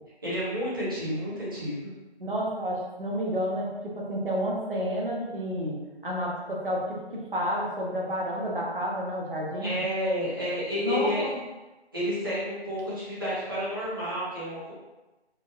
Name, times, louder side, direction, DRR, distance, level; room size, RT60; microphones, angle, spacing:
voice 1, 0.2-1.9 9.6-11.2 11.9-14.7, equal, 20° right, -10 dB, 0.8 m, -30 dB
voice 2, 2.2-5.7 6.0-6.8 7.3-9.8 10.8-11.4, equal, 55° right, -4 dB, 1.0 m, -30 dB
4.5 x 2.1 x 2.5 m, 1.1 s
figure-of-eight pair, 165°, 32 cm